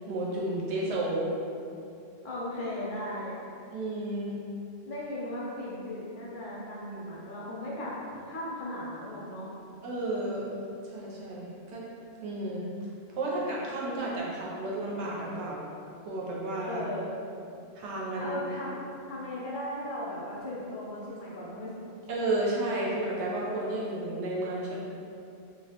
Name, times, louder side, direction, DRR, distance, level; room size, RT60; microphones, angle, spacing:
voice 1, 0.1-1.3 3.7-4.4 9.8-10.5 10.8-11.9 12.2-12.7 13.1-15.6 16.0-16.8 17.8-18.4 22.1-24.8, right 2 dB, 90° right, -5 dB, 0.9 m, -32 dB
voice 2, 2.2-3.3 4.9-9.5 16.6-17.1 18.2-18.7 19.1-21.7, left 1 dB, 60° left, -6 dB, 0.6 m, -37 dB
2.3 x 2.0 x 2.8 m, 2.5 s
omnidirectional pair, 1.1 m